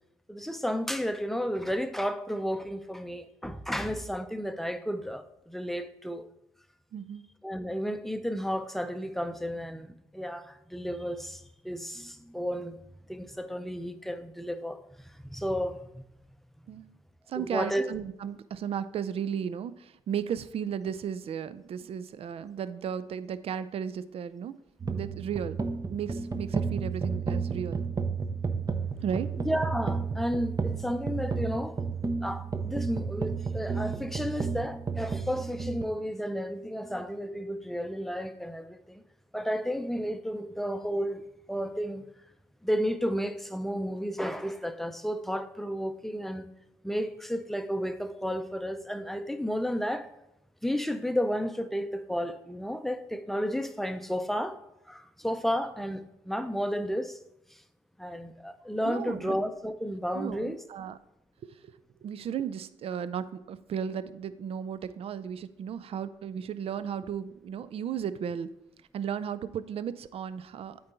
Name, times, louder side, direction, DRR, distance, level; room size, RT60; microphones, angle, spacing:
voice 1, 0.3-6.3 7.4-12.8 13.1-14.8 15.0-16.0 17.4-17.9 29.4-31.8 32.2-39.0 39.3-41.2 41.5-42.0 42.6-46.5 46.8-50.1 50.6-54.6 54.9-57.2 57.5-57.6 58.0-60.6, equal, ahead, 0.7 m, -32 dB
voice 2, 6.9-7.2 16.7-16.9 17.3-24.5 24.9-25.6 25.9-27.8 29.0-29.3 58.8-59.4 60.1-61.0 61.4-61.6 62.0-68.5 68.9-70.8, right 8 dB, 50° right, 0.4 m, -35 dB
sound 1, 24.8-35.8, right 5 dB, 30° right, 0.8 m, -32 dB
8.6 x 4.0 x 4.3 m
hypercardioid pair, 50°, 13 cm